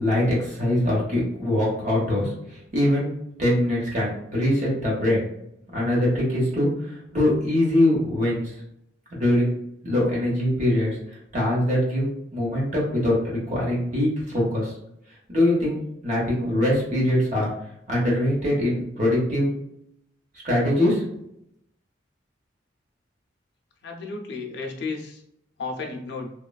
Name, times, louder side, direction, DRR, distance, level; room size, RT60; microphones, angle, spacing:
voice 1, 0.0-3.1 3.4-5.3 5.7-8.5 9.1-9.5 9.8-11.0 11.3-14.7 15.3-17.5 17.9-19.5 20.4-21.0, left 1 dB, 40° right, -4 dB, 0.9 m, -23 dB
voice 2, 23.8-25.2 25.6-26.3, left 4 dB, 60° left, 0 dB, 0.5 m, -33 dB
3.0 x 2.3 x 2.3 m, 0.77 s
head